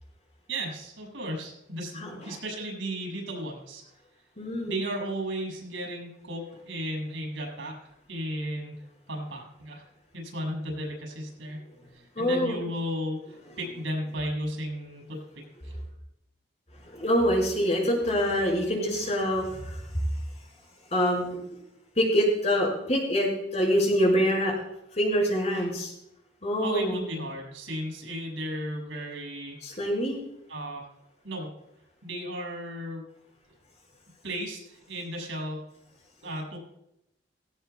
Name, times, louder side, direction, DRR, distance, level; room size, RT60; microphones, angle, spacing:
voice 1, 0.5-3.8 4.6-8.7 9.1-9.8 10.1-11.6 11.9-15.2 15.6-15.7 26.6-29.6 30.5-30.9 31.2-31.5 32.0-33.1 34.2-35.6 36.2-36.6, equal, 90° right, 0 dB, 6.5 m, -34 dB
voice 2, 4.4-4.7 12.2-12.6 16.9-19.8 20.9-21.4 22.0-24.6 25.0-25.9 26.4-27.0 29.6-30.2, equal, 35° left, -2 dB, 5.2 m, -25 dB
17.5 x 17.0 x 2.3 m, 0.83 s
head